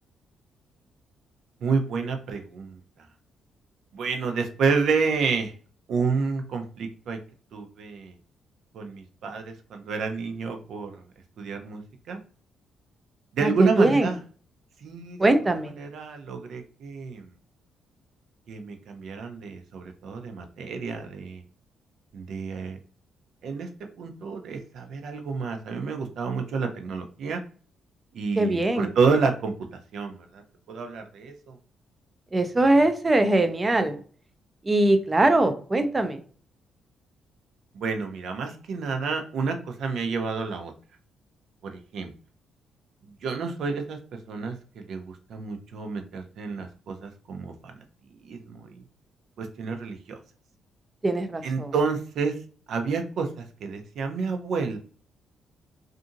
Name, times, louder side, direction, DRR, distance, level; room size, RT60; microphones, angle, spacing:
voice 1, 1.6-2.8 3.9-5.5 5.9-7.2 7.5-8.1 8.7-11.0 11.4-11.8 12.1-12.2 13.3-14.2 14.8-17.2 18.5-21.4 22.1-22.8 23.4-23.7 24.0-27.4 28.1-29.5 29.9-30.4 30.7-31.5 37.7-40.7 41.6-42.1 43.0-47.8 48.3-48.8 49.4-50.2 51.4-52.3 52.7-54.8, right 5 dB, 70° right, 5 dB, 0.6 m, -29 dB
voice 2, 13.4-14.1 15.2-15.7 28.4-28.9 32.3-34.0 34.6-36.2 51.0-51.7, right 2 dB, 25° right, 9 dB, 0.4 m, -22 dB
2.7 x 2.5 x 2.6 m, 0.43 s
cardioid pair, 90°, 0 cm